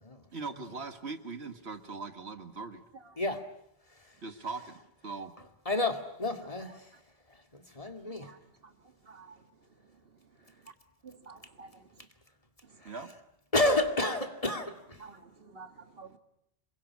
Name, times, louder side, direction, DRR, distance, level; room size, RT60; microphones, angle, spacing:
voice 1, 0.3-2.8 4.2-5.3 12.8-13.1, right 4 dB, 80° right, 2.0 m, -40 dB
voice 2, 5.7-6.9 7.5-8.3 12.8-12.9 13.5-15.0, left 2 dB, 35° left, 2.3 m, -30 dB
voice 3, 8.1-8.4 9.1-9.4 11.0-11.8 15.0-16.2, right 4 dB, 65° right, 2.0 m, -50 dB
28.0 x 22.0 x 9.6 m
omnidirectional pair, 1.1 m